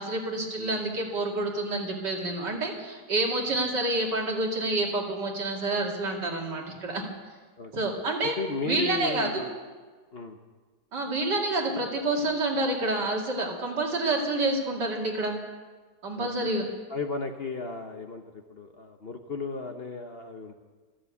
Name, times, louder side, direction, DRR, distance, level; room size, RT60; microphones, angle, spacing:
voice 1, 0.0-7.0 7.7-8.3 8.7-9.4 10.9-15.4 16.0-16.7, right 2 dB, 80° right, 0 dB, 2.9 m, -28 dB
voice 2, 8.4-9.5 10.1-10.4 16.1-16.5 16.9-20.5, left 3 dB, 45° left, 5 dB, 1.0 m, -35 dB
14.0 x 11.5 x 8.3 m, 1.4 s
omnidirectional pair, 1.8 m